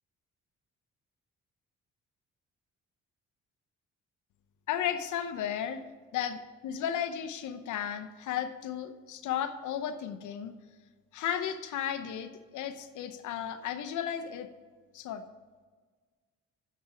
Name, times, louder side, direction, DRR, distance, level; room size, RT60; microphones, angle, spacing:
voice 1, 4.7-5.8 6.1-10.5 11.1-14.5 14.9-15.2, left 9 dB, 80° left, 10 dB, 0.8 m, -34 dB
8.5 x 6.9 x 5.0 m, 1.5 s
cardioid pair, 90°, 30 cm